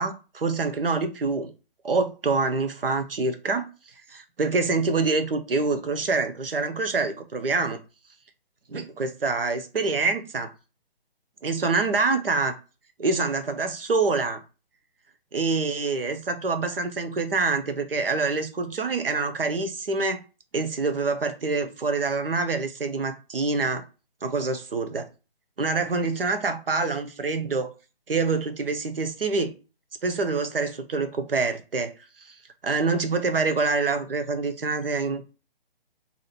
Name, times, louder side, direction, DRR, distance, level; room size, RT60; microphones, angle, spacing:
voice 1, 0.0-1.5 1.8-3.7 4.1-7.8 8.7-10.5 11.4-12.5 13.0-14.4 15.3-20.2 20.5-23.8 24.2-25.1 25.6-27.7 28.1-29.5 30.0-31.9 32.3-32.4 32.6-35.2, right 4 dB, 65° right, 0.7 m, -26 dB
2.8 x 2.4 x 4.2 m
figure-of-eight pair, 140°, 30 cm